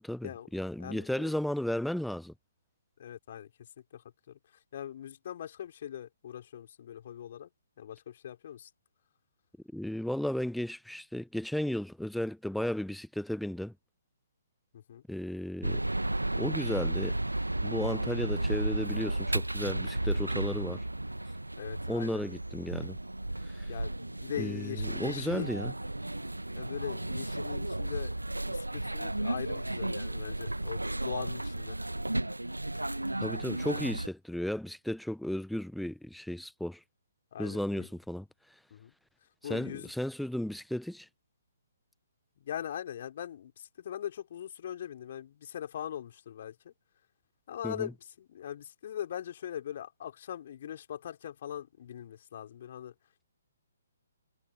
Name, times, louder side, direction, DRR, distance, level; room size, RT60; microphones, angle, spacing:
voice 1, 0.0-2.3 9.7-13.7 15.1-15.8 16.4-17.2 17.6-20.8 21.9-23.0 23.6-23.7 24.4-25.7 33.2-36.8 37.4-38.3 39.4-41.1 47.6-47.9, left 1 dB, ahead, 1.0 m, -34 dB
voice 2, 0.8-1.3 3.0-3.5 3.9-4.0 4.3-4.4 4.7-7.5 7.8-8.7 14.7-15.0 21.6-22.2 23.6-25.5 26.6-31.8 37.3-37.9 38.7-38.9 39.4-39.9 42.4-46.7 47.5-52.9, left 10 dB, 45° left, 5.1 m, -41 dB
sound 1, 15.6-34.1, right 1 dB, 80° right, 1.4 m, -33 dB
figure-of-eight pair, 130°, 0 cm